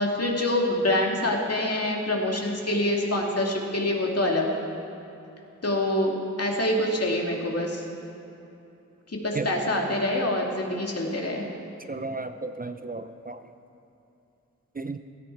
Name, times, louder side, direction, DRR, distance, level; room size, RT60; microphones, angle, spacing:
voice 1, 0.0-4.5 5.6-7.8 9.1-11.4, left 1 dB, 55° left, 0 dB, 2.4 m, -26 dB
voice 2, 11.9-13.4 14.8-15.0, right 3 dB, 30° right, 9 dB, 0.5 m, -33 dB
16.0 x 14.5 x 4.6 m, 2.9 s
wide cardioid pair, 80°, 30 cm